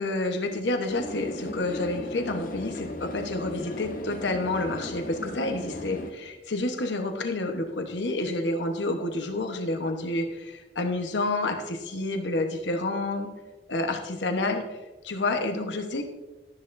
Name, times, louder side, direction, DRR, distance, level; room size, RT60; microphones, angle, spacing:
voice 1, 0.0-13.3 13.7-14.8 15.0-16.1, left 2 dB, 75° left, 5 dB, 1.1 m, -29 dB
sound 1, 0.9-6.1, left 1 dB, 45° left, 0.8 m, -37 dB
13.0 x 10.5 x 2.6 m, 1.1 s
head